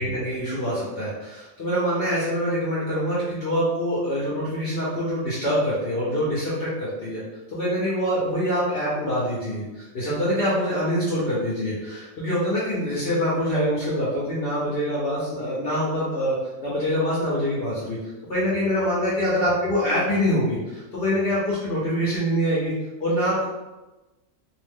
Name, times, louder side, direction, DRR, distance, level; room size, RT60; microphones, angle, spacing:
voice 1, 0.0-7.2 7.5-16.4 16.6-18.0 18.3-22.7 23.0-23.5, equal, 50° left, -7 dB, 0.8 m, -25 dB
2.6 x 2.1 x 3.4 m, 1.1 s
omnidirectional pair, 1.4 m